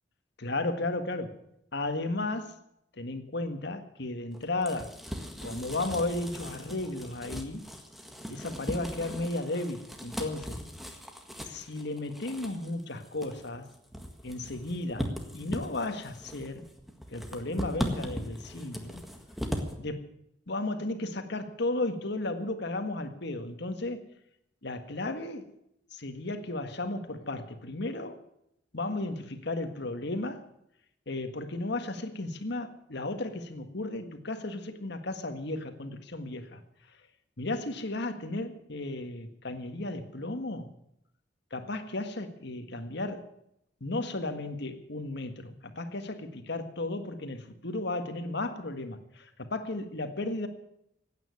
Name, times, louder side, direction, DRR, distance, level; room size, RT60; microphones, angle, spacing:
voice 1, 0.4-1.4 1.7-2.5 3.0-4.9 5.4-7.6 8.3-10.6 11.5-13.7 14.2-16.6 17.1-19.0 19.8-20.0 20.5-24.0 24.6-25.5 25.9-28.2 28.7-30.5 31.1-36.6 37.4-40.7 41.5-43.3 43.8-50.5, left 2 dB, 65° left, 7 dB, 1.7 m, -34 dB
sound 1, 4.3-19.7, equal, ahead, 1.7 m, -39 dB
16.0 x 9.2 x 9.7 m, 0.78 s
head